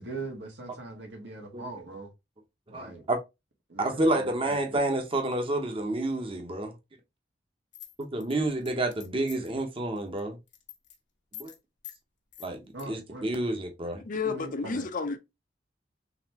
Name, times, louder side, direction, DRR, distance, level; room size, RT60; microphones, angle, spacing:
voice 1, 0.0-2.1 2.7-3.0 3.7-4.6 12.7-13.3 14.2-14.9, right 2 dB, 80° right, 1.7 m, -41 dB
voice 2, 2.7-3.2 3.8-6.7 8.1-10.4 11.4-11.5 12.4-14.0, right 2 dB, 30° right, 0.9 m, -29 dB
sound 1, 7.7-9.6 10.0-10.2 10.5-11.0 11.3-11.6 11.8-12.0 12.3-12.8, left 11 dB, 80° left, 1.0 m, -46 dB
voice 3, 14.1-15.2, left 4 dB, 50° left, 0.6 m, -31 dB
4.1 x 3.4 x 2.8 m
head